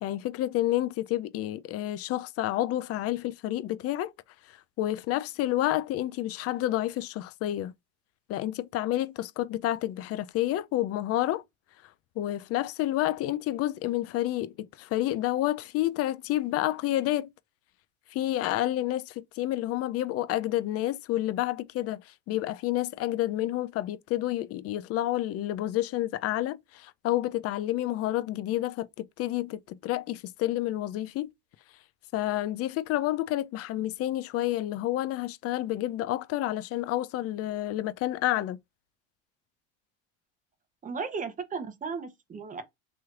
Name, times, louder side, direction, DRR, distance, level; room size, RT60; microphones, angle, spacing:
voice 1, 0.0-4.1 4.8-7.7 8.3-11.4 12.2-17.3 18.1-31.3 32.1-38.6, left 14 dB, 45° left, 0.4 m, -29 dB
voice 2, 40.8-42.6, right 5 dB, 20° right, 0.9 m, -35 dB
3.0 x 3.0 x 2.4 m
supercardioid pair, 95°, 35 cm